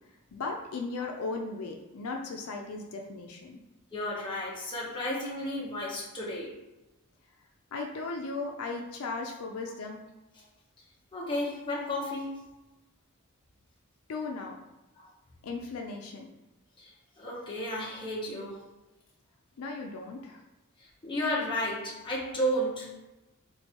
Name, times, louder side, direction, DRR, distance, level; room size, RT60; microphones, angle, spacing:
voice 1, 0.3-3.6 7.7-10.0 14.1-14.6 15.4-16.3 19.6-20.4, left 3 dB, 70° left, 1 dB, 0.4 m, -36 dB
voice 2, 3.9-6.5 11.1-12.4 15.0-15.1 16.8-18.6 20.8-22.9, equal, 20° left, -5 dB, 0.9 m, -33 dB
3.1 x 2.5 x 4.3 m, 1.0 s
head